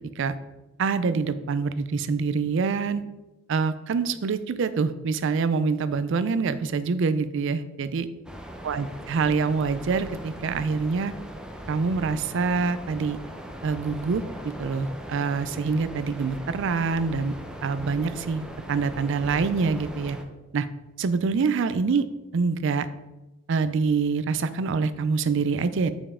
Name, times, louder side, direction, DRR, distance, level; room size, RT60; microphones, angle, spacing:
voice 1, 0.8-3.0 3.5-8.1 8.6-11.1 11.7-13.2 13.6-14.2 14.6-17.3 17.6-18.4 18.7-20.2 20.5-20.7 21.0-22.1 22.3-22.9 23.5-25.9, right 4 dB, 65° right, 13 dB, 0.4 m, -25 dB
sound 1, 8.3-20.2, equal, 5° right, 0.5 m, -40 dB
6.9 x 5.3 x 3.6 m, 1.0 s
head